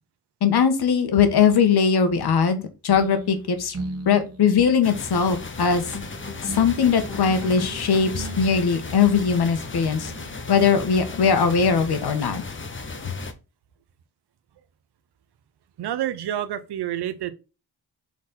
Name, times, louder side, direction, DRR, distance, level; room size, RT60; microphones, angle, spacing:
voice 1, 0.4-3.8 4.0-5.8 6.4-10.1 10.5-12.4, left 6 dB, 75° left, 1.5 m, -20 dB
sound 1, 2.9-10.4, right 2 dB, 40° right, 1.5 m, -38 dB
sound 2, 3.3-3.5 5.9-8.6, left 4 dB, 55° left, 2.3 m, -39 dB
sound 3, 4.8-13.3, left 3 dB, 30° left, 1.2 m, -36 dB
voice 2, 15.8-17.3, right 11 dB, 90° right, 0.9 m, -28 dB
6.0 x 4.3 x 4.3 m
cardioid pair, 90°, 38 cm